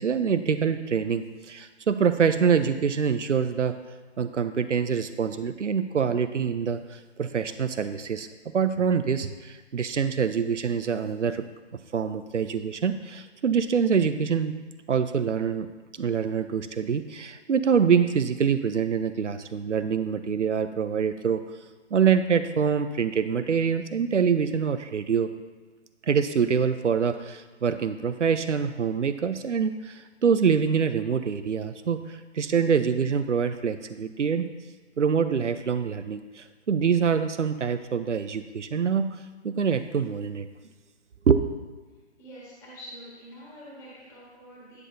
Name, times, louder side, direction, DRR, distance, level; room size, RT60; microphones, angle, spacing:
voice 1, 0.0-3.8 4.2-8.3 8.5-11.4 11.9-14.5 14.9-15.7 16.0-21.4 21.9-25.3 26.0-34.5 35.0-39.1 39.4-40.5 41.3-41.5, right 6 dB, 85° right, 11 dB, 0.7 m, -25 dB
voice 2, 42.2-44.8, equal, 10° left, -6 dB, 1.5 m, -45 dB
9.7 x 6.7 x 2.7 m, 1.3 s
figure-of-eight pair, 145°, 35 cm